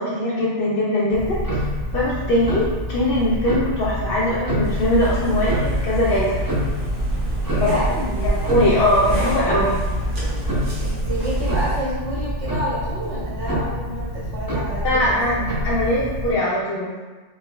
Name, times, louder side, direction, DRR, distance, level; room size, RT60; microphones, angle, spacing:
voice 1, 0.0-1.7 1.9-6.4 7.6-7.8 8.2-9.8 14.8-15.3 15.6-16.9, left 1 dB, 65° left, -7 dB, 0.7 m, -21 dB
Tick-tock, 1.1-16.3, equal, 25° right, 0.5 m, -27 dB
sound 1, 4.6-11.8, right 1 dB, 50° right, 0.9 m, -27 dB
voice 2, 7.5-8.3 10.8-15.6, right 1 dB, 65° right, -8 dB, 1.5 m, -29 dB
4.4 x 2.0 x 2.2 m, 1.3 s
omnidirectional pair, 1.2 m